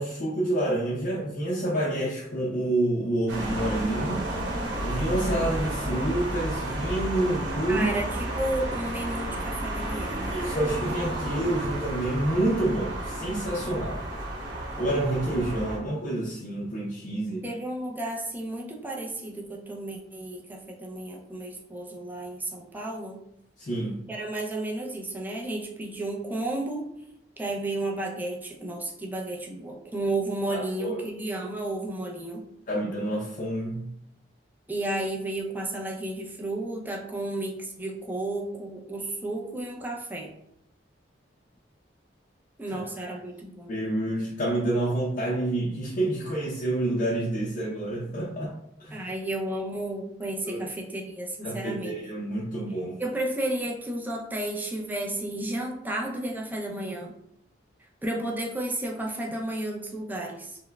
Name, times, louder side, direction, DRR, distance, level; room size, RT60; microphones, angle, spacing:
voice 1, 0.0-4.3 4.8-7.9 10.3-14.0 14.7-17.5 23.6-24.0 30.5-31.0 32.7-33.8 43.0-43.1 43.7-48.5 48.8-49.0 50.5-50.7 51.4-53.0, right 1 dB, 50° left, -4 dB, 0.5 m, -28 dB
sound 1, 3.3-15.8, right 1 dB, 85° right, 0.9 m, -32 dB
voice 2, 7.7-10.4 17.4-23.2 24.1-26.9 27.4-32.5 34.7-40.3 42.6-43.7 48.9-52.0 53.0-57.1 58.0-60.6, right 1 dB, 10° right, -1 dB, 0.5 m, -32 dB
4.4 x 2.1 x 2.2 m, 0.77 s
head